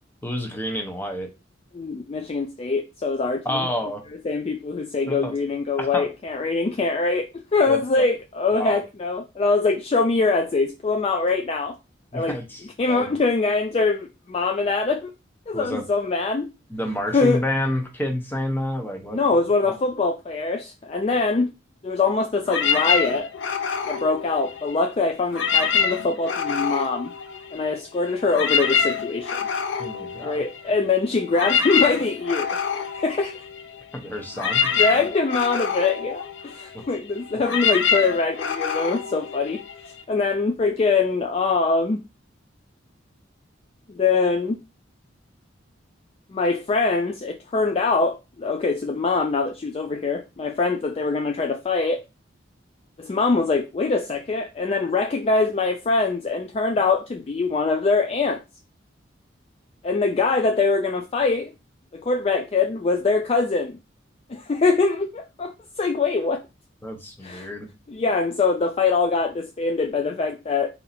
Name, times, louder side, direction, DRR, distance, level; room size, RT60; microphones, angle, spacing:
voice 1, 0.2-1.3 3.4-4.0 5.1-5.3 5.8-6.1 7.7-8.0 8.5-8.8 12.1-13.1 15.5-15.8 16.7-19.2 19.7-19.8 29.8-30.4 33.9-35.0 36.7-36.8 66.8-67.7, left 1 dB, 10° left, 0.8 m, -29 dB
voice 2, 1.7-3.7 4.2-11.7 12.1-12.4 12.8-15.1 15.5-16.5 17.1-17.4 19.1-21.5 21.8-23.3 23.9-27.1 27.5-29.4 30.2-33.4 34.7-39.6 40.1-42.0 43.9-44.6 46.3-52.0 53.0-58.4 59.8-61.5 61.9-63.8 64.3-66.4 67.2-67.5 67.9-70.7, left 4 dB, 30° left, 0.3 m, -23 dB
ringtone trippy cats, 22.5-24.9 25.2-27.8 28.1-40.0, left 6 dB, 70° left, 0.6 m, -26 dB
4.0 x 2.7 x 4.1 m
head